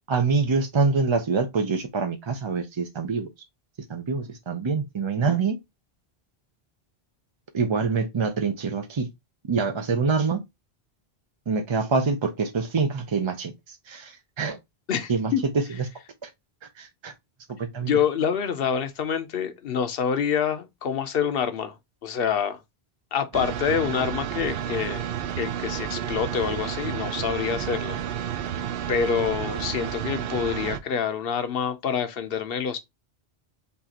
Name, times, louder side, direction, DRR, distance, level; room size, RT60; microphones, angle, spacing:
voice 1, 0.1-3.3 3.9-5.6 7.5-9.1 9.5-10.4 11.5-14.6 15.1-15.3 16.2-16.3 16.8-17.1 17.6-17.9, right 4 dB, 40° right, 0.4 m, -25 dB
voice 2, 14.9-15.4 17.8-21.7 22.0-22.6 23.1-25.0 25.4-28.0 28.9-32.8, left 7 dB, 65° left, 0.9 m, -26 dB
sound 1, 23.3-30.8, right 9 dB, 70° right, 0.7 m, -31 dB
5.4 x 2.5 x 2.8 m
omnidirectional pair, 1.1 m